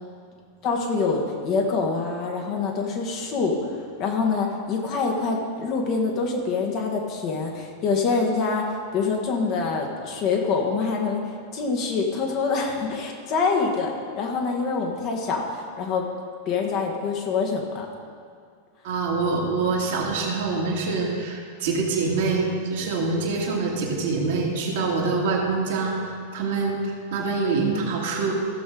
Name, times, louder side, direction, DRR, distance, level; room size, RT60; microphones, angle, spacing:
voice 1, 0.6-3.6 4.0-11.2 11.5-16.0 16.4-17.9, left 4 dB, 40° left, 0 dB, 1.6 m, -25 dB
voice 2, 18.8-26.0 26.3-28.3, right 4 dB, 55° right, -2 dB, 2.0 m, -25 dB
15.0 x 6.9 x 3.9 m, 2.2 s
figure-of-eight pair, 90°, 0 cm